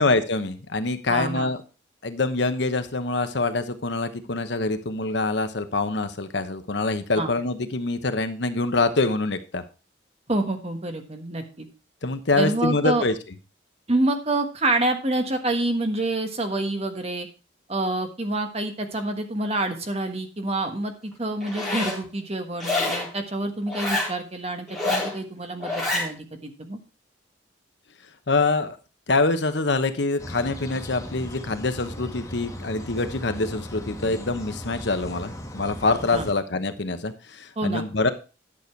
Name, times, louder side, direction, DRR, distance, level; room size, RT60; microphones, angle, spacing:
voice 1, 0.0-1.6 2.0-9.6 12.0-13.1 28.3-28.8 29.1-38.1, left 3 dB, 65° left, 10 dB, 1.0 m, -25 dB
voice 2, 1.1-1.5 7.2-7.3 10.3-11.7 12.4-13.0 13.9-17.3 17.7-26.8 36.1-36.3 37.6-37.8, right 2 dB, 30° right, 6 dB, 1.4 m, -27 dB
Zipper (clothing), 21.4-22.0 22.6-23.1 23.7-24.1 24.7-25.1 25.6-26.1, left 2 dB, ahead, 4.2 m, -26 dB
sound 1, 30.2-36.3, equal, 15° left, 1.5 m, -37 dB
11.0 x 6.9 x 4.5 m, 0.33 s
head